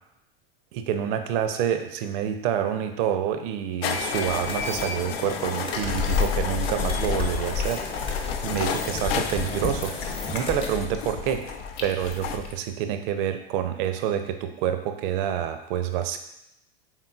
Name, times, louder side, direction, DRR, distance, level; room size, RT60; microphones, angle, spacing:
voice 1, 0.7-16.2, right 9 dB, 60° right, 8 dB, 0.5 m, -28 dB
sound 1, 3.8-12.4, left 7 dB, 70° left, 0.5 m, -33 dB
sound 2, 3.9-10.7, left 3 dB, 20° left, 0.6 m, -36 dB
sound 3, 5.7-12.5, left 6 dB, 45° left, 0.9 m, -31 dB
4.5 x 3.5 x 2.3 m, 0.83 s
hypercardioid pair, 95°, 31 cm